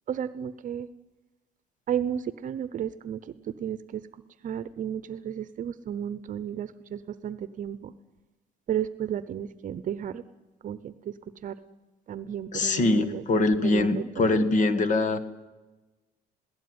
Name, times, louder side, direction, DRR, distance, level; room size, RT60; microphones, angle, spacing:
voice 1, 0.1-0.9 1.9-4.1 4.4-7.9 8.7-10.2 10.6-11.1 11.4-11.6 12.1-14.5, right 9 dB, 50° right, 14 dB, 0.8 m, -33 dB
voice 2, 12.5-15.2, left 2 dB, 50° left, 11 dB, 1.8 m, -23 dB
20.5 x 17.0 x 9.7 m, 1.1 s
cardioid pair, 110°, 17 cm